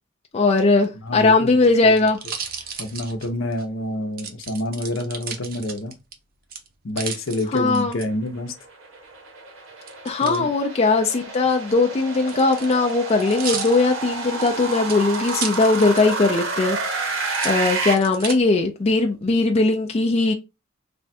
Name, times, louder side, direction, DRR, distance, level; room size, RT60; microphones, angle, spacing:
voice 1, 0.3-2.2 7.5-8.0 10.0-16.8 17.4-20.3, left 3 dB, 30° left, 0.4 m, -19 dB
voice 2, 1.0-1.5 1.8-1.9 2.8-5.9 6.8-8.5 10.2-10.5, left 1 dB, 70° left, 0.7 m, -27 dB
sound 1, 1.1-3.6 4.2-6.1 6.5-8.0 9.9-10.4 11.3-16.2 16.6-16.7 17.2-18.4 19.0-19.5, right 6 dB, 45° right, 0.6 m, -34 dB
sound 2, 8.4-17.9, right 3 dB, 70° right, 1.0 m, -30 dB
3.4 x 2.2 x 4.1 m
head